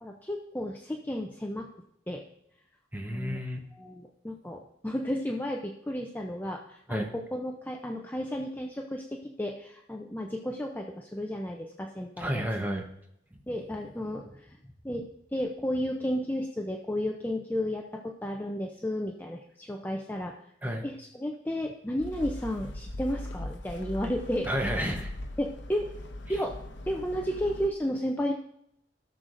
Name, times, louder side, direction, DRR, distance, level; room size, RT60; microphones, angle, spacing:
voice 1, 0.0-1.7 2.1-2.2 3.1-3.4 3.8-12.4 13.5-14.6 14.8-20.3 20.8-24.5 25.4-25.9 26.3-26.6 26.9-28.3, equal, 10° left, 1 dB, 0.5 m, -33 dB
voice 2, 2.9-3.6 6.9-7.1 12.2-12.9 20.6-20.8 24.5-25.1, equal, 10° right, 2 dB, 0.9 m, -31 dB
sound 1, 22.0-27.7, left 1 dB, 85° left, 0.8 m, -40 dB
16.5 x 6.5 x 2.6 m, 0.77 s
head